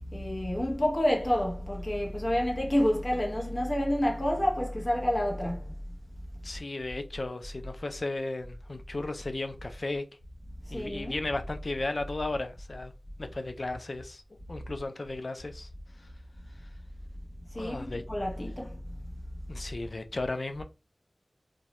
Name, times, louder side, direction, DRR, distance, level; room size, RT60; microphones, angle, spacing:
voice 1, 0.0-5.8 10.6-11.1 17.5-19.1, equal, 40° left, 0.7 m, -29 dB
voice 2, 6.4-10.0 10.7-12.9 13.2-14.2 14.5-15.7 16.0-16.1 17.5-18.0 19.5-20.6, left 2 dB, 60° left, 0.3 m, -35 dB
2.2 x 2.0 x 2.8 m
wide cardioid pair, 55°, 0 cm